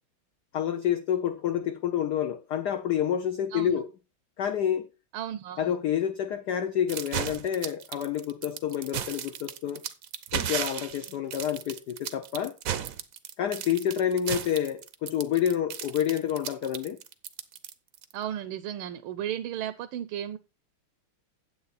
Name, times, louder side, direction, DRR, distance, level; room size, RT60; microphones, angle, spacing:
voice 1, 0.5-3.9 4.4-4.9 5.6-9.8 10.3-12.5 13.4-17.0, left 9 dB, 65° left, 1.1 m, -28 dB
voice 2, 5.1-5.7 18.1-20.4, right 11 dB, 80° right, 1.5 m, -34 dB
sound 1, 6.9-18.1, right 9 dB, 60° right, 0.9 m, -35 dB
9.5 x 7.9 x 4.1 m
omnidirectional pair, 2.3 m